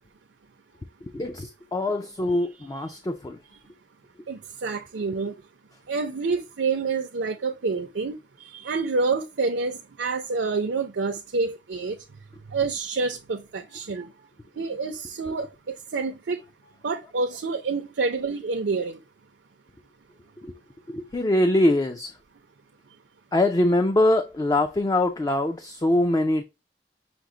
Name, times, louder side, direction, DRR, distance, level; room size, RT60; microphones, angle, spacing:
voice 1, 1.0-3.4 20.4-20.6 20.9-22.1 23.3-26.4, left 1 dB, 20° left, 0.4 m, -23 dB
voice 2, 4.3-5.3 5.9-8.1 8.5-12.0 12.5-14.1 14.6-16.4 16.8-19.0, right 4 dB, 75° right, 0.5 m, -28 dB
5.9 x 2.0 x 3.7 m
head